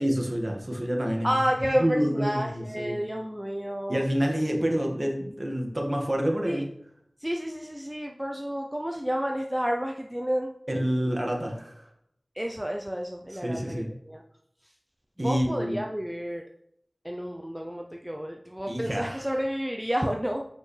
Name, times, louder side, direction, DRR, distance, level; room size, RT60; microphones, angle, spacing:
voice 1, 0.0-1.3 1.7-3.0 3.9-6.7 10.7-11.9 13.3-13.9 15.2-15.8 18.7-19.3, equal, 35° right, 0 dB, 1.8 m, -28 dB
voice 2, 1.2-4.0 6.4-6.6 7.2-10.5 12.4-14.2 15.2-16.4 17.0-20.5, equal, 10° right, 2 dB, 0.5 m, -30 dB
7.7 x 5.8 x 3.3 m, 0.74 s
wide cardioid pair, 45°, 0 cm